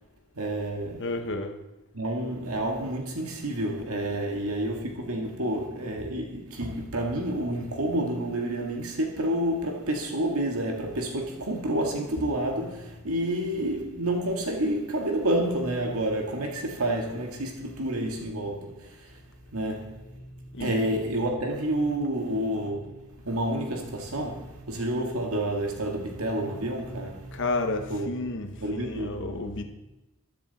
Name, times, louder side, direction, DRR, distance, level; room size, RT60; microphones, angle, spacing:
voice 1, 0.4-1.1 1.9-19.2 19.5-28.1 28.3-29.6, right 1 dB, 70° right, 1.9 m, -29 dB
voice 2, 1.0-1.6 20.5-21.0 27.3-29.6, left 2 dB, 55° left, 1.0 m, -31 dB
13.5 x 12.0 x 4.2 m
head